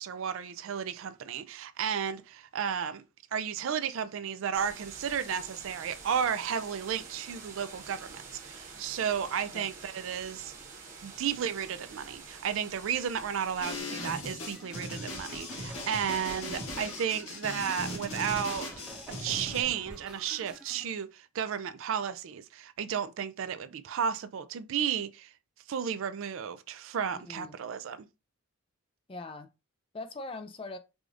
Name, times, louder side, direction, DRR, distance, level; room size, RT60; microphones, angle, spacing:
voice 1, 0.0-3.0 3.3-10.5 11.0-18.7 19.2-25.3 25.7-28.1, right 8 dB, 65° right, 0.3 m, -33 dB
sound 1, 4.5-13.8, right 4 dB, 35° right, 1.0 m, -47 dB
voice 2, 9.2-9.7 16.4-16.9 27.1-27.6 29.1-29.5 29.9-30.8, left 2 dB, 25° left, 0.3 m, -42 dB
sound 2, 13.6-19.6, left 1 dB, 90° left, 1.8 m, -39 dB
sound 3, 14.5-20.9, right 1 dB, 5° right, 0.8 m, -48 dB
4.8 x 2.4 x 2.5 m
head